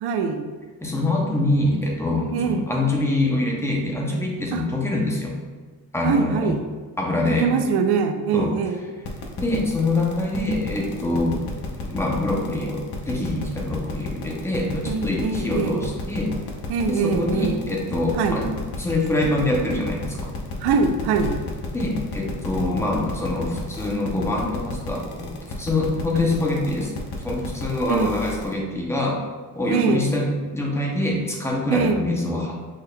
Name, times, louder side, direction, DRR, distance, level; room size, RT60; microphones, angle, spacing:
voice 1, 0.0-0.4 2.3-2.7 4.5-4.6 6.0-6.6 7.4-8.8 14.8-15.8 16.7-17.6 18.2-18.4 20.6-21.4 27.9-28.1 29.7-30.1 31.7-32.0, right 5 dB, 85° right, 6 dB, 0.6 m, -23 dB
voice 2, 0.8-5.4 5.9-6.6 7.0-7.5 8.3-8.5 9.4-11.4 11.8-16.3 16.9-20.3 21.7-25.3 25.6-26.9 27.2-29.2 29.5-32.6, left 2 dB, 5° left, -1 dB, 0.6 m, -24 dB
sound 1, 9.0-28.5, left 3 dB, 80° left, 0.9 m, -32 dB
6.3 x 3.5 x 2.2 m, 1.4 s
cardioid pair, 160°, 38 cm